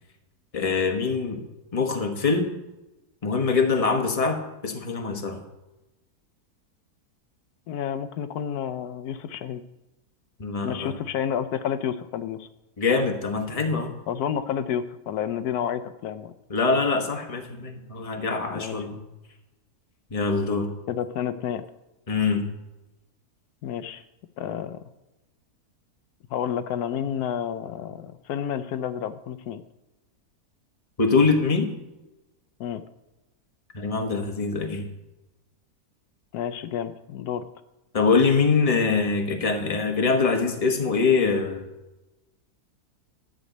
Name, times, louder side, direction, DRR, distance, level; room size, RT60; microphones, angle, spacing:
voice 1, 0.5-1.4 1.7-2.5 3.2-5.4 10.4-11.0 12.8-13.9 16.5-19.0 20.1-20.7 22.1-22.4 31.0-31.7 33.7-34.9 37.9-41.6, left 4 dB, 25° left, 3 dB, 1.1 m, -23 dB
voice 2, 7.7-9.6 10.6-12.5 14.1-16.3 18.5-18.8 20.9-21.6 23.6-24.0 24.4-24.8 26.3-29.6 32.6-32.8 36.3-37.5, left 9 dB, 85° left, 11 dB, 1.2 m, -30 dB
11.5 x 5.2 x 7.9 m, 1.0 s
omnidirectional pair, 1.6 m